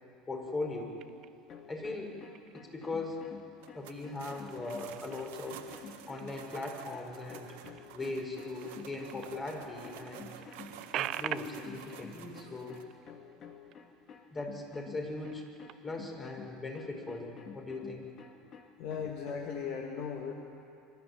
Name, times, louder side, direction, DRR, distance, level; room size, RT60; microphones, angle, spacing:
voice 1, 0.3-1.0 1.7-2.1 2.5-3.2 3.7-5.6 6.1-7.5 7.9-10.3 11.0-12.8 14.3-15.5 15.8-18.1, left 2 dB, 25° left, 2 dB, 5.3 m, -39 dB
sound 1, 1.0-1.6 2.1-2.7 3.2-3.9 4.2-9.4 9.8-9.9 10.1-14.1 14.4-14.6 15.1-16.1, right 12 dB, 50° right, 0.6 m, -44 dB
sound 2, 1.5-19.6, left 6 dB, 40° left, 2.4 m, -51 dB
sound 3, 3.6-12.8, right 9 dB, 70° right, 1.8 m, -50 dB
voice 2, 18.8-20.3, left 6 dB, 60° left, 1 dB, 2.0 m, -37 dB
25.5 x 13.5 x 9.8 m, 2.5 s
hypercardioid pair, 75°, 0 cm